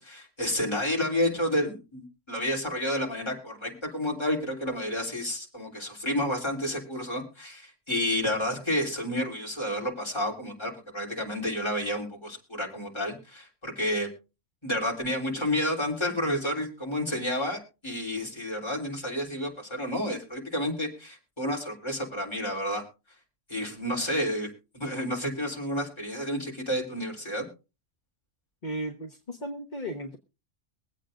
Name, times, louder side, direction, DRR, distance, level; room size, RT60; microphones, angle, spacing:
voice 1, 0.0-14.1 14.6-22.8 23.5-24.5 24.7-27.5, left 1 dB, 20° left, -2 dB, 3.5 m, -30 dB
voice 2, 28.6-30.2, equal, 40° left, 3 dB, 1.3 m, -35 dB
23.5 x 8.3 x 2.5 m, 0.30 s
omnidirectional pair, 1.3 m